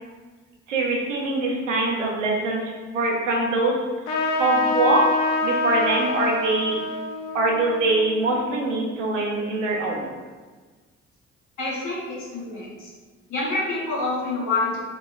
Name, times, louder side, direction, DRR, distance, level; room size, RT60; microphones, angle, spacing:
voice 1, 0.7-2.6 2.9-3.8 4.1-5.0 5.4-6.8 7.3-10.1, right 2 dB, 90° right, -1 dB, 0.5 m, -23 dB
Trumpet, 4.1-9.1, left 3 dB, 70° left, 0.5 m, -26 dB
voice 2, 11.6-12.9 13.3-14.8, left 3 dB, 55° left, -6 dB, 0.9 m, -27 dB
3.6 x 3.1 x 2.4 m, 1.4 s
figure-of-eight pair, 45°, 36 cm